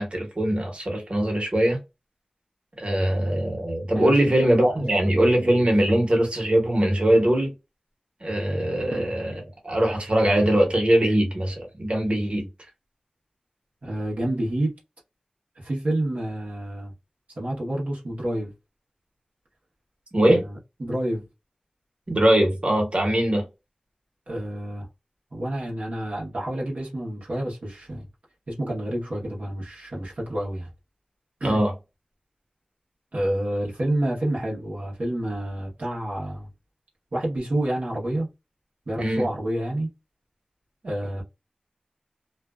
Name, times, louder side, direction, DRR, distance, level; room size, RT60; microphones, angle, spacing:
voice 1, 0.0-1.8 2.8-7.5 8.2-12.5 20.1-20.4 22.1-23.4 31.4-31.7 39.0-39.3, right 1 dB, 50° right, 1.2 m, -21 dB
voice 2, 13.8-14.7 15.6-16.9 17.4-18.5 20.3-21.3 24.3-24.9 25.3-28.1 28.5-30.7 31.4-31.6 33.1-36.5 37.1-38.3 38.9-39.9 40.8-41.2, right 1 dB, 80° right, 0.9 m, -28 dB
2.5 x 2.2 x 2.3 m
wide cardioid pair, 65°, 3 cm